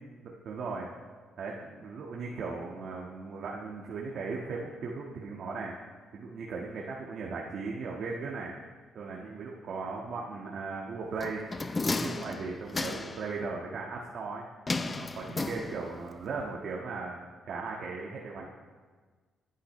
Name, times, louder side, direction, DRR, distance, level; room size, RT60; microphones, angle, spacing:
voice 1, 0.2-0.9 1.4-5.7 6.1-8.5 8.9-11.5 12.0-14.4 14.9-18.5, right 4 dB, 65° right, -2 dB, 1.6 m, -37 dB
sound 1, 11.2-13.3 14.7-16.1 16.4-16.5, left 3 dB, 25° left, 0.6 m, -33 dB
22.0 x 10.0 x 3.2 m, 1.4 s
cardioid pair, 90°, 0 cm